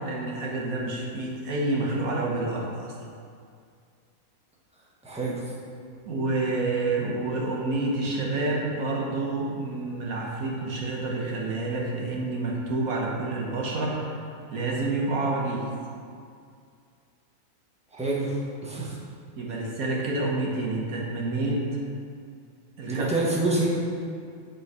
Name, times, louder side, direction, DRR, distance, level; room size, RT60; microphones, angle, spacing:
voice 1, 0.0-2.9 6.0-14.2 14.5-15.6 19.4-21.8 22.8-23.1, right 2 dB, 80° right, -2 dB, 1.5 m, -28 dB
voice 2, 5.0-5.4 17.9-19.0 22.9-23.7, right 2 dB, 5° right, -6 dB, 1.0 m, -27 dB
8.3 x 3.9 x 4.7 m, 2.3 s
omnidirectional pair, 1.5 m